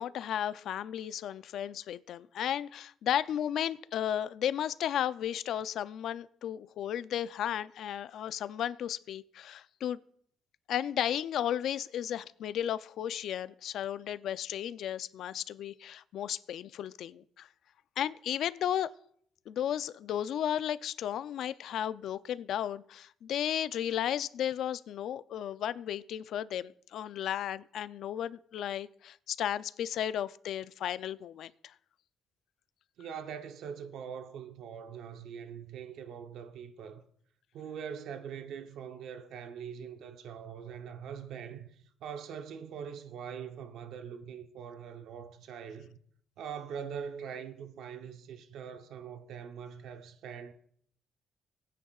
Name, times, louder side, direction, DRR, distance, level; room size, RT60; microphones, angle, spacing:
voice 1, 0.0-10.0 10.7-17.5 18.0-18.9 19.5-31.7, left 10 dB, 75° left, 0.4 m, -34 dB
voice 2, 33.0-37.1 37.5-46.0 46.4-50.5, right 7 dB, 80° right, 0.8 m, -43 dB
20.5 x 9.3 x 2.4 m
cardioid pair, 90°, 0 cm